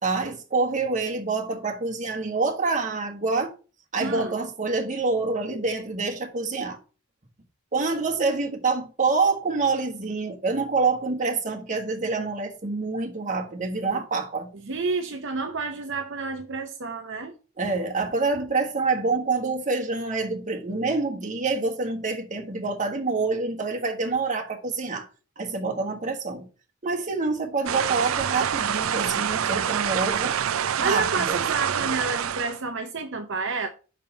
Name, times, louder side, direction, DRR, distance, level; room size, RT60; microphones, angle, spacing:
voice 1, 0.0-3.5 3.9-6.8 7.7-14.5 17.6-25.1 25.4-26.4 26.8-30.4 30.8-31.4, right 3 dB, 40° right, 1.5 m, -26 dB
voice 2, 4.0-4.4 14.6-17.3 30.8-33.7, right 4 dB, 60° right, 0.8 m, -30 dB
sound 1, 27.7-32.6, right 8 dB, 85° right, 0.5 m, -26 dB
5.6 x 5.2 x 6.7 m
head